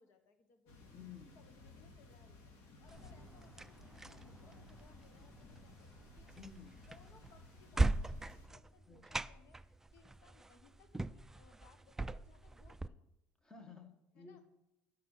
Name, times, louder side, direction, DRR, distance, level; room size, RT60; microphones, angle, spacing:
voice 1, 0.0-0.9 1.3-2.5 2.8-6.3 6.8-8.1 8.5-13.0 14.1-14.4, left 5 dB, 60° left, 8 dB, 1.3 m, -66 dB
sound 1, 0.7-8.5, left 2 dB, 75° left, 2.9 m, -57 dB
voice 2, 0.9-1.4 6.4-6.9 8.9-9.2 13.4-14.4, left 6 dB, 15° left, 5 dB, 1.4 m, -54 dB
sound 2, 2.9-12.9, right 2 dB, 10° right, 0.3 m, -41 dB
12.0 x 6.0 x 5.7 m, 0.93 s
cardioid pair, 130°, 5 cm